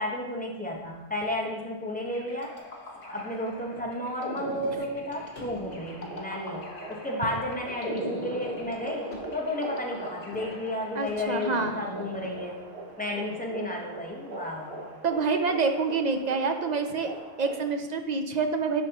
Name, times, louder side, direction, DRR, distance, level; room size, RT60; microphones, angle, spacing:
voice 1, 0.0-2.6 3.0-12.6 13.0-14.9, left 1 dB, 10° left, -1 dB, 1.0 m, -32 dB
sound 1, 2.1-12.6, equal, 40° left, 1.2 m, -41 dB
sound 2, 2.6-2.7 3.1-3.4 3.7-4.0 4.5-6.9 7.3-7.4 8.3-10.1 10.3-10.7 11.0-11.8 12.2-12.4 12.9-13.0, left 2 dB, 60° left, 1.4 m, -49 dB
sound 3, 5.6-17.7, right 2 dB, 65° right, 1.2 m, -43 dB
voice 2, 11.0-11.7 15.0-17.1 17.4-18.9, right 4 dB, 50° right, 6 dB, 0.6 m, -27 dB
10.5 x 5.0 x 2.9 m, 1.1 s
omnidirectional pair, 1.1 m